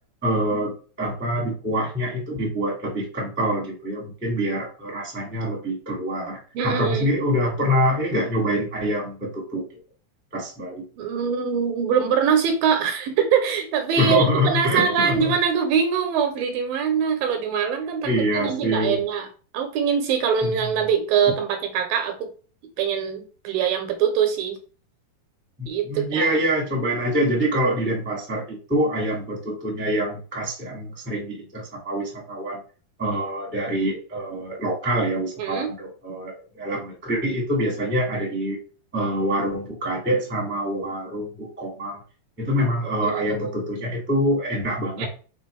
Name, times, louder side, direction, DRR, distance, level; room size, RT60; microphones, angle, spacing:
voice 1, 0.2-9.6 10.3-10.8 13.9-15.3 18.0-19.0 20.4-20.5 25.6-32.6 33.0-38.6 38.9-42.0 42.4-45.1, equal, 5° right, -2 dB, 1.3 m, -25 dB
voice 2, 6.5-7.1 11.0-19.3 19.5-22.3 22.8-24.6 25.7-26.3 35.4-35.7 43.0-43.8 45.0-45.1, right 7 dB, 75° right, 6 dB, 2.5 m, -23 dB
6.0 x 4.8 x 3.4 m, 0.39 s
omnidirectional pair, 4.3 m